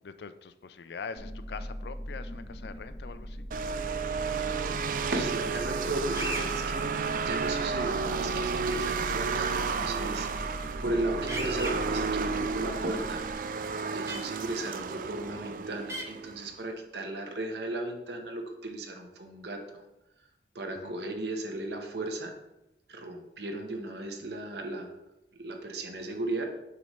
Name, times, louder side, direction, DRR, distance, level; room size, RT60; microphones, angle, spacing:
voice 1, 0.0-3.5 14.9-15.0 20.7-21.0, left 5 dB, 75° left, 12 dB, 0.4 m, -43 dB
sound 1, 1.2-13.3, equal, 20° left, 0.6 m, -40 dB
sound 2, 3.5-16.5, right 5 dB, 50° right, 0.3 m, -32 dB
voice 2, 5.1-13.2 13.9-19.8 20.5-22.3 22.9-24.9 25.4-26.5, right 2 dB, 75° right, 3 dB, 1.0 m, -35 dB
sound 3, 6.1-6.5 8.7-8.8 11.3-11.7 14.1-14.2 15.9-16.0, right 1 dB, 15° right, 0.8 m, -35 dB
6.8 x 3.2 x 5.4 m, 0.91 s
head